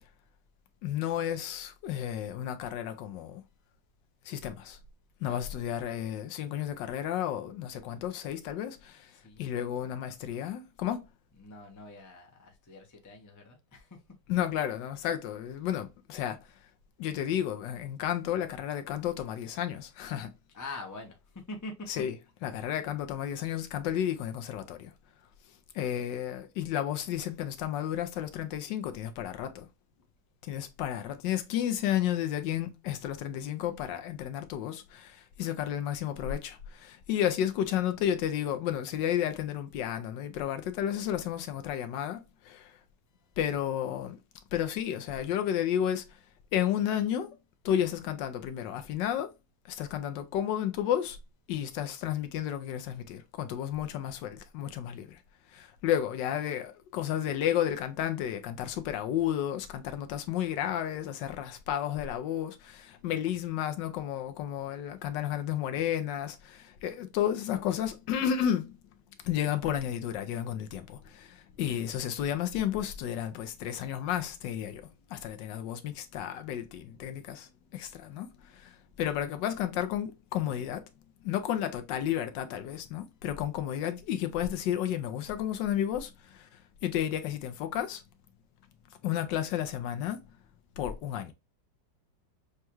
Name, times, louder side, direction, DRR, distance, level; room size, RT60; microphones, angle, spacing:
voice 1, 0.8-3.4 4.2-4.8 5.2-9.1 9.4-11.0 14.3-16.4 17.0-20.3 21.9-22.1 22.4-24.9 25.7-29.7 30.4-42.7 43.4-44.2 44.5-46.0 46.5-47.4 47.6-49.3 49.7-51.2 51.5-55.2 55.5-68.8 69.2-80.8 81.2-86.5 86.8-88.0 89.0-90.2 90.8-91.3, left 10 dB, 80° left, 1.3 m, -32 dB
voice 2, 5.2-6.0 9.1-9.5 11.4-14.0 20.5-22.0 22.5-22.7, left 2 dB, 30° left, 0.3 m, -45 dB
6.5 x 2.3 x 2.9 m
omnidirectional pair, 1.9 m